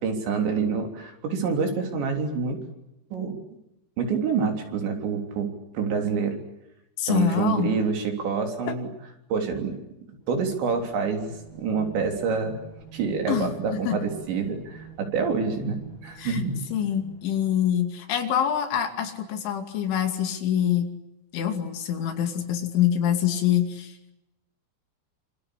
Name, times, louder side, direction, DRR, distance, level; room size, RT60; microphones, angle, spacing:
voice 1, 0.0-2.6 3.1-3.4 4.0-6.3 7.1-8.9 9.3-9.7 10.3-12.6 12.9-16.6, right 5 dB, 70° right, 4 dB, 5.8 m, -27 dB
voice 2, 7.0-7.7 8.7-8.8 13.3-14.0 16.2-16.4 16.7-20.9 21.3-24.1, left 10 dB, 85° left, 6 dB, 5.0 m, -25 dB
sound 1, 10.2-17.9, right 8 dB, 35° left, 5.4 m, -46 dB
26.5 x 26.5 x 8.6 m, 0.87 s
omnidirectional pair, 5.3 m